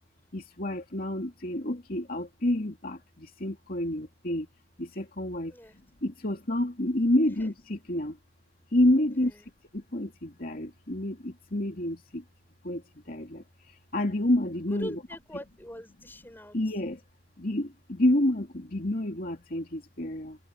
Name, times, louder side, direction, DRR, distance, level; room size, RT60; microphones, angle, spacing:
voice 1, 0.3-3.0 3.4-4.4 4.8-5.5 6.0-8.1 8.7-9.3 9.9-12.0 12.6-12.8 13.1-13.4 13.9-15.0 16.5-17.0 17.4-20.4, left 1 dB, 45° left, 2.8 m, -28 dB
voice 2, 9.1-9.5 14.7-16.6, equal, 10° left, 5.8 m, -42 dB
head